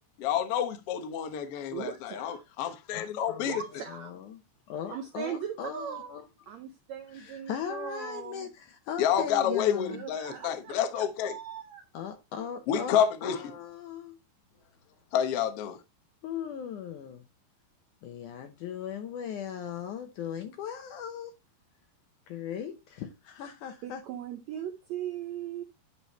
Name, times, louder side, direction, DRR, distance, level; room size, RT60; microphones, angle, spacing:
voice 1, 0.2-3.6 9.0-11.4 12.7-13.4 15.1-15.8, left 9 dB, 90° left, 1.3 m, -29 dB
voice 2, 1.7-2.4 3.4-4.1 4.9-6.2 6.5-8.5 9.9-11.8 23.8-25.6, right 9 dB, 90° right, 1.5 m, -39 dB
voice 3, 2.9-4.4 4.7-6.2 7.1-10.0 11.9-14.2 16.2-17.2 18.0-21.3 22.3-24.0, left 8 dB, 75° left, 2.0 m, -38 dB
11.0 x 4.7 x 3.0 m
omnidirectional pair, 4.2 m